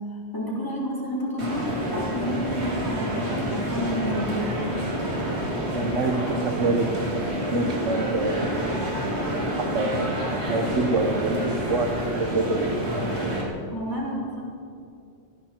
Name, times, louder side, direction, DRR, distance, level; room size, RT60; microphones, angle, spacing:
voice 1, 0.3-4.5 13.7-14.5, equal, 15° left, -5 dB, 3.6 m, -30 dB
sound 1, 1.4-13.4, equal, 60° right, 2.7 m, -28 dB
voice 2, 5.7-8.6 9.6-10.1 10.5-12.8, right 3 dB, 90° right, 6 dB, 1.4 m, -26 dB
18.5 x 14.5 x 4.4 m, 2.3 s
omnidirectional pair, 1.2 m